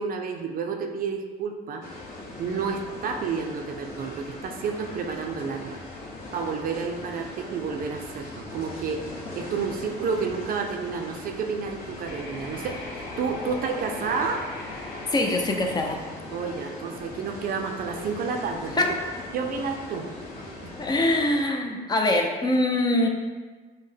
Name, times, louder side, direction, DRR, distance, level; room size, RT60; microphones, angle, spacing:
voice 1, 0.0-1.9 2.4-5.8 6.3-9.0 9.3-14.5 16.3-19.0 19.3-20.1 20.6-20.8, right 5 dB, 55° right, 5 dB, 0.5 m, -30 dB
sound 1, 1.8-21.4, left 2 dB, 60° left, 0.9 m, -40 dB
sound 2, 12.0-17.0, left 2 dB, 80° left, 1.0 m, -40 dB
voice 2, 15.1-16.0 18.8-18.9 20.8-23.1, left 1 dB, 25° left, 2 dB, 0.5 m, -23 dB
5.4 x 2.1 x 3.3 m, 1.4 s
cardioid pair, 110°, 17 cm